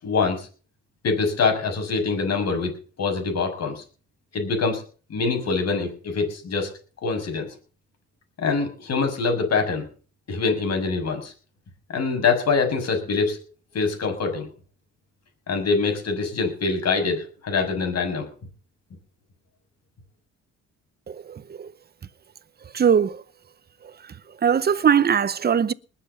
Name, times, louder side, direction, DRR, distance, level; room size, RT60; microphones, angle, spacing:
voice 1, 0.0-0.5 1.0-2.7 3.0-3.8 4.3-4.8 5.1-6.7 7.0-7.5 8.4-9.9 10.3-11.3 11.9-13.4 13.7-14.5 15.5-18.3, left 4 dB, 55° left, 6.5 m, -24 dB
voice 2, 21.1-21.7 22.7-23.2 23.8-24.1 24.4-25.7, right 7 dB, 30° right, 0.8 m, -21 dB
20.5 x 7.9 x 6.9 m
cardioid pair, 90°, 30 cm